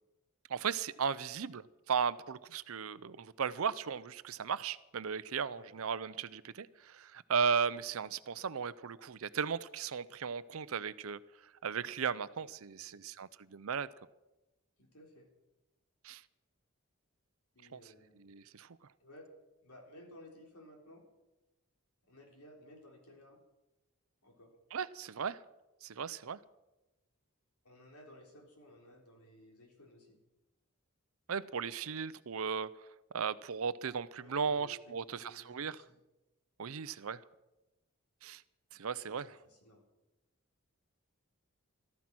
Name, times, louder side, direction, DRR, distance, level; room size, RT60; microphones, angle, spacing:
voice 1, 0.5-11.2 11.6-13.9 16.0-16.2 17.7-17.8 18.3-18.7 24.7-25.4 25.8-26.4 31.3-32.7 33.1-35.8 36.6-37.2 38.2-38.4 38.8-39.3, right 6 dB, 70° right, 16 dB, 0.6 m, -36 dB
voice 2, 12.7-13.1 14.8-15.3 17.5-18.2 19.0-19.2 19.6-21.0 22.1-23.4 24.2-24.5 27.6-30.2 34.2-36.0 39.1-39.8, left 1 dB, 90° left, 1 dB, 3.8 m, -57 dB
13.5 x 13.5 x 6.1 m, 1.0 s
head